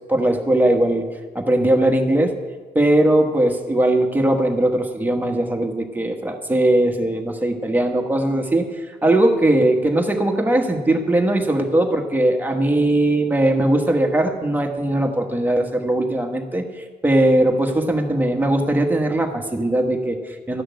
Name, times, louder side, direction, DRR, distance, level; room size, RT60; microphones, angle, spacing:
voice 1, 0.1-1.1 1.3-2.4 2.7-20.6, right 1 dB, 10° right, 2 dB, 1.3 m, -19 dB
13.0 x 6.3 x 9.2 m, 1.4 s
cardioid pair, 125°, 17 cm